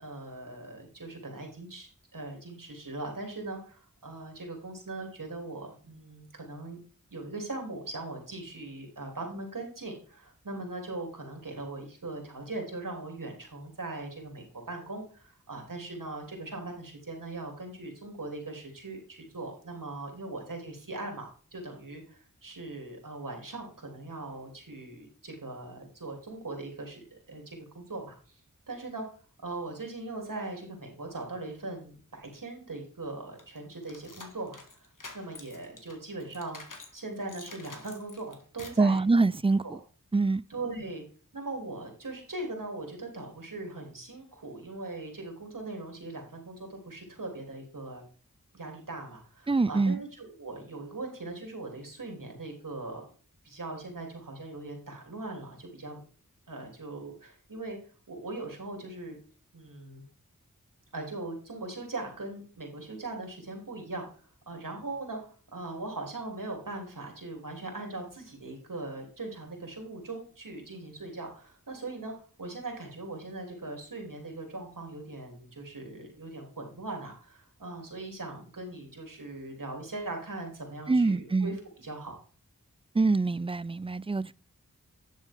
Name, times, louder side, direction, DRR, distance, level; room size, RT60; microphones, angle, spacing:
voice 1, 0.0-6.8 7.1-28.4 28.7-29.0 29.4-34.6 35.1-36.6 36.9-39.0 39.6-39.8 40.5-41.0 41.3-48.0 48.5-53.1 53.4-56.0 56.5-57.8 58.1-59.2 59.5-60.0 60.9-82.2, right 2 dB, 80° right, 3.3 m, -40 dB
sound 1, 33.4-37.0 37.3-38.9, left 3 dB, 70° left, 1.9 m, -48 dB
voice 2, 38.8-39.8 40.1-40.4 49.5-50.0 80.9-81.6 82.9-84.3, right 3 dB, 20° right, 0.4 m, -25 dB
11.0 x 6.4 x 3.6 m
wide cardioid pair, 45°, 32 cm